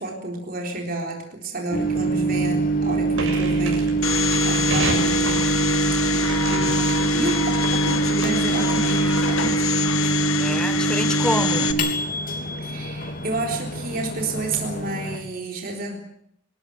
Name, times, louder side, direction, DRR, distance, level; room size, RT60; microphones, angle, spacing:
voice 1, 0.0-5.4 6.5-9.6 12.6-16.0, right 2 dB, 40° right, 1 dB, 3.9 m, -30 dB
Microwave oven, 1.7-15.2, right 3 dB, 40° left, 3.2 m, -24 dB
sound 1, 3.1-9.5, right 2 dB, 65° right, 7.0 m, -33 dB
Domestic sounds home sounds, 4.0-11.7, left 6 dB, 75° left, 1.8 m, -26 dB
voice 2, 6.4-6.9 10.4-11.8, equal, 5° left, 10 dB, 1.3 m, -28 dB
27.0 x 13.0 x 9.5 m, 0.72 s
head